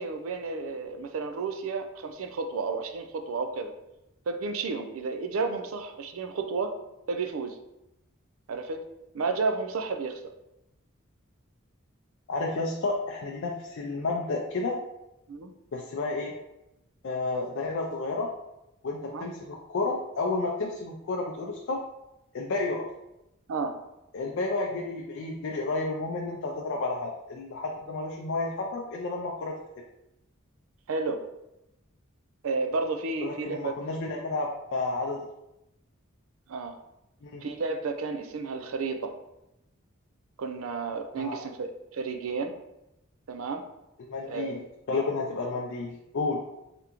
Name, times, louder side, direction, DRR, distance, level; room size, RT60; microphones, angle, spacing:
voice 1, 0.0-3.7 4.3-6.7 7.1-7.6 8.5-8.9 9.1-10.2 15.3-15.5 19.1-19.3 23.5-23.8 30.9-31.2 32.4-33.7 36.5-36.7 37.4-39.1 40.4-42.6 43.3-43.7 44.2-44.6, right 4 dB, 80° right, 6 dB, 0.4 m, -32 dB
voice 2, 12.3-14.8 15.7-16.4 17.0-18.3 18.8-21.8 22.3-22.9 24.1-29.6 33.2-35.3 37.2-37.5 41.2-41.4 44.1-46.4, left 3 dB, 60° left, 0 dB, 0.4 m, -31 dB
3.6 x 3.5 x 2.9 m, 0.91 s
head